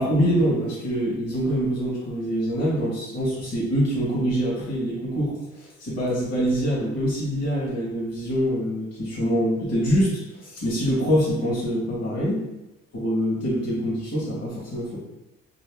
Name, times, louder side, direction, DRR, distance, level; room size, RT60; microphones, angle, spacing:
voice 1, 0.0-12.4 12.9-15.0, equal, 55° left, -6 dB, 1.2 m, -25 dB
2.6 x 2.5 x 3.4 m, 0.96 s
cardioid pair, 90°, 30 cm